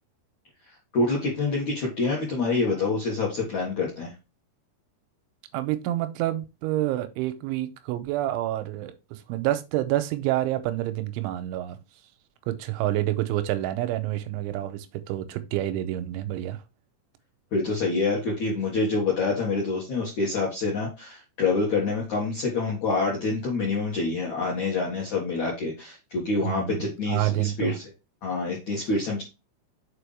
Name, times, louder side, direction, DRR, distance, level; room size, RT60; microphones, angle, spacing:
voice 1, 0.9-4.1 17.5-27.7 28.2-29.2, left 3 dB, 60° left, 2.1 m, -26 dB
voice 2, 5.5-11.8 12.5-16.6 26.4-27.8, right 14 dB, 85° right, 2.9 m, -28 dB
6.9 x 4.8 x 3.4 m
omnidirectional pair, 5.7 m